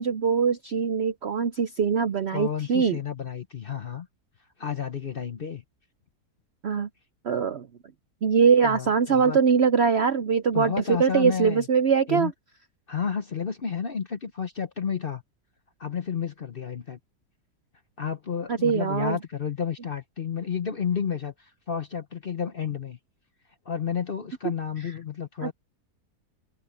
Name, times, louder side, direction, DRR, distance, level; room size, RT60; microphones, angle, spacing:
voice 1, 0.0-3.0 6.6-6.9 7.2-7.7 8.2-10.7 11.0-12.3 18.5-19.2 25.4-25.5, right 6 dB, 60° right, 0.7 m, -22 dB
voice 2, 2.3-4.1 4.6-5.6 8.6-9.4 10.5-11.7 12.1-12.3 12.9-15.2 15.8-17.0 18.0-23.0 23.7-25.5, left 7 dB, 45° left, 0.8 m, -31 dB
omnidirectional pair, 1.8 m